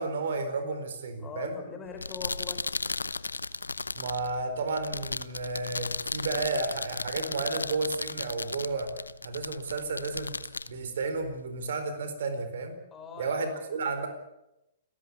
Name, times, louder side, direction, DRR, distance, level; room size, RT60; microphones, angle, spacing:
voice 1, 0.0-1.6 3.9-8.9 9.2-10.3 10.6-12.7 13.2-14.1, right 3 dB, 60° right, 8 dB, 4.3 m, -32 dB
voice 2, 1.2-2.7 12.9-13.7, left 5 dB, 20° left, 4 dB, 4.3 m, -42 dB
sound 1, 1.8-11.7, left 3 dB, 80° left, 0.8 m, -36 dB
30.0 x 14.0 x 8.5 m, 0.89 s
figure-of-eight pair, 115°, 0 cm